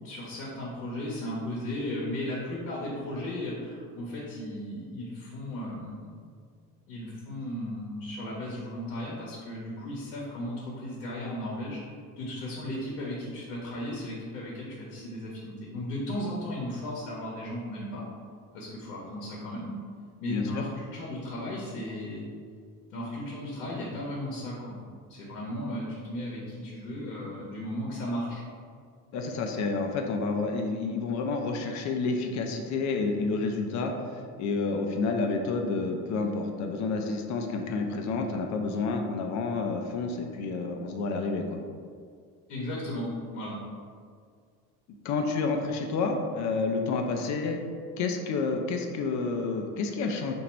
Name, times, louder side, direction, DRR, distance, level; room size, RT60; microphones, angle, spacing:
voice 1, 0.0-6.1 6.9-11.8 12.2-18.1 18.5-19.7 20.2-22.3 22.9-24.8 25.1-28.4 42.5-43.1 43.3-43.6, left 1 dB, 70° left, -5 dB, 0.9 m, -35 dB
voice 2, 20.3-20.7 29.1-41.6 45.0-47.6 48.0-50.3, left 4 dB, 40° left, 3 dB, 0.5 m, -29 dB
2.9 x 2.6 x 4.3 m, 2.1 s
hypercardioid pair, 65°, 46 cm